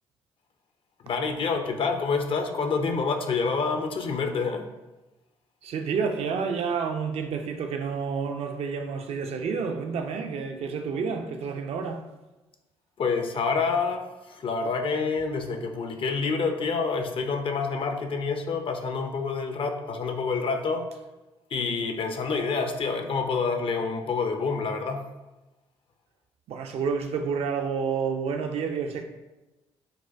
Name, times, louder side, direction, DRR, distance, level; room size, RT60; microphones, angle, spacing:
voice 1, 1.0-4.7 13.0-20.9 21.5-25.0, left 4 dB, 45° left, 0.4 m, -27 dB
voice 2, 5.6-12.1 26.5-29.0, right 5 dB, 55° right, 0.4 m, -29 dB
4.0 x 2.2 x 2.5 m
hypercardioid pair, 45°, 12 cm